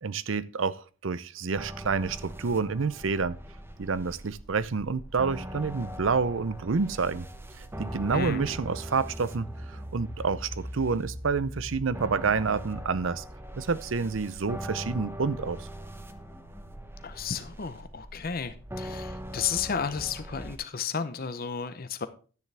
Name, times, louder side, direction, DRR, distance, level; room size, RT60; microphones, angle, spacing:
voice 1, 0.0-3.4 3.8-7.3 7.8-13.2 13.6-15.7, right 5 dB, 70° right, 0.6 m, -28 dB
sound 1, 1.5-20.6, equal, 10° right, 0.9 m, -41 dB
voice 2, 17.0-22.1, left 6 dB, 45° left, 0.8 m, -33 dB
10.5 x 9.2 x 3.4 m
head